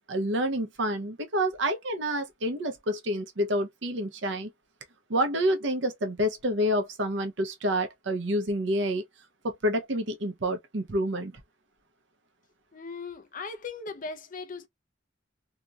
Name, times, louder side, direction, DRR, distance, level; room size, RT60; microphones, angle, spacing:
voice 1, 0.1-4.5 5.1-9.0 9.4-11.3, equal, 70° right, 0.8 m, -28 dB
voice 2, 12.7-14.7, left 4 dB, 45° left, 0.6 m, -38 dB
2.9 x 2.5 x 2.3 m
head